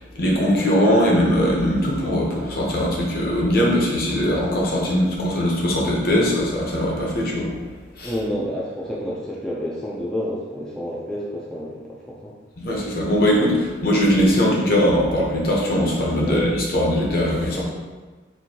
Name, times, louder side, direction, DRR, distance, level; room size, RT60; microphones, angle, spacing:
voice 1, 0.2-7.5 8.0-8.1 12.6-17.6, equal, 55° left, -3 dB, 0.8 m, -20 dB
voice 2, 8.0-11.7 12.1-12.3 16.2-16.5 17.5-17.6, equal, 5° left, -6 dB, 0.4 m, -29 dB
4.4 x 2.6 x 2.8 m, 1.3 s
head